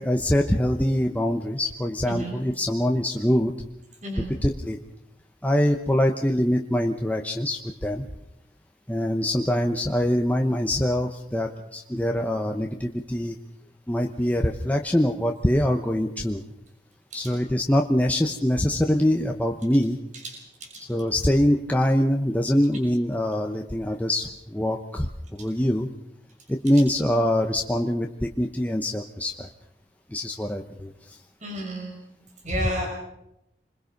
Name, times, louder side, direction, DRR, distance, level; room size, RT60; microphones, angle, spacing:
voice 1, 0.0-3.5 4.1-4.8 5.4-8.1 8.9-13.4 13.9-16.4 17.1-20.0 20.9-25.9 26.5-29.5 30.1-31.2 32.5-32.6, left 1 dB, 10° left, 2 dB, 1.0 m, -24 dB
voice 2, 4.0-4.3 20.2-20.3 20.6-20.9 31.4-32.0 32.4-32.9, equal, 45° right, 1 dB, 6.0 m, -32 dB
27.0 x 21.5 x 5.3 m, 0.85 s
head